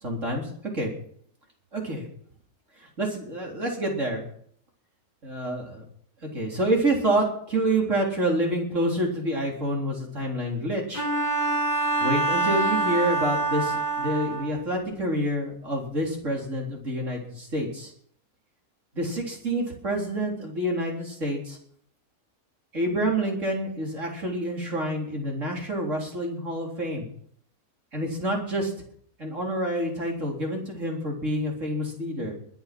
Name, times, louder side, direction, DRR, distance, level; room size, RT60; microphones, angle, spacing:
voice 1, 0.0-0.9 1.7-2.1 2.8-4.2 5.2-5.8 6.2-11.1 12.0-17.9 18.9-21.6 22.7-27.1 27.9-28.7 29.2-32.3, right 1 dB, 55° right, -1 dB, 4.2 m, -28 dB
Bowed string instrument, 10.9-14.7, right 3 dB, 35° left, 4.3 m, -25 dB
22.0 x 9.5 x 6.1 m, 0.62 s
omnidirectional pair, 1.5 m